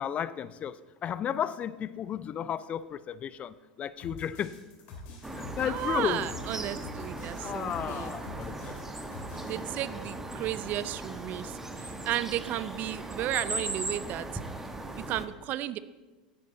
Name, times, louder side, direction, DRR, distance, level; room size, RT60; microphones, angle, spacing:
voice 1, 0.0-4.7 5.3-6.4 7.4-9.1, left 9 dB, 30° left, 18 dB, 0.4 m, -34 dB
sound 1, 4.0-9.6, left 3 dB, 50° left, 2.9 m, -46 dB
sound 2, 5.2-15.3, right 2 dB, 10° right, 1.0 m, -38 dB
voice 2, 5.6-8.2 9.5-11.5 11.8-14.3 15.0-15.8, right 13 dB, 40° right, 16 dB, 0.4 m, -34 dB
9.7 x 9.7 x 3.9 m, 1.2 s
figure-of-eight pair, 85°, 4 cm